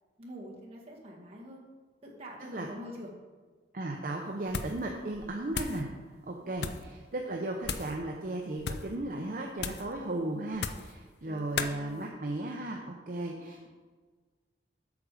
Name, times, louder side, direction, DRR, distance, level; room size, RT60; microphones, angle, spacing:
voice 1, 0.2-1.6 2.0-3.2 11.2-12.1, equal, 35° right, -4 dB, 1.9 m, -46 dB
voice 2, 3.7-5.9 6.3-13.7, right 1 dB, 50° right, 1 dB, 0.7 m, -35 dB
sound 1, 4.5-4.9 5.1-5.8 6.5-6.9 7.6-8.0 8.6-8.9 9.6-9.9 10.5-10.9 11.6-11.8, left 5 dB, 65° left, 0.5 m, -36 dB
8.4 x 6.4 x 4.9 m, 1.4 s
head